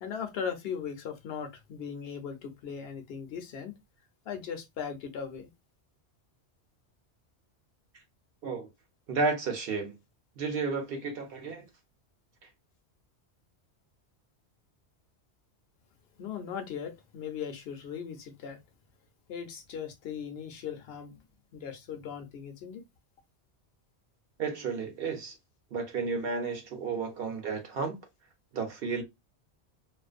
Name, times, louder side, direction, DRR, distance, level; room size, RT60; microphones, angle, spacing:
voice 1, 0.0-3.8 4.3-5.5 16.2-18.6 19.3-21.2 21.5-22.8, left 7 dB, 65° left, 0.8 m, -38 dB
voice 2, 9.1-10.0 10.4-11.6 24.4-25.4 25.7-28.0 28.5-29.0, right 4 dB, 60° right, 0.9 m, -32 dB
2.5 x 2.1 x 2.4 m
omnidirectional pair, 1.2 m